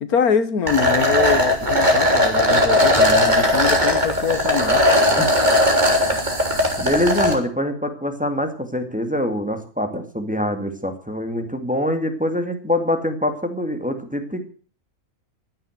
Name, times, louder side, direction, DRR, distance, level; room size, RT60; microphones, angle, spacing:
voice 1, 0.0-4.8, left 6 dB, 80° left, 1.8 m, -24 dB
sound 1, 0.7-7.3, left 1 dB, 30° right, 3.6 m, -18 dB
voice 2, 6.8-14.4, left 1 dB, 5° right, 2.2 m, -24 dB
15.0 x 10.5 x 7.9 m
omnidirectional pair, 1.6 m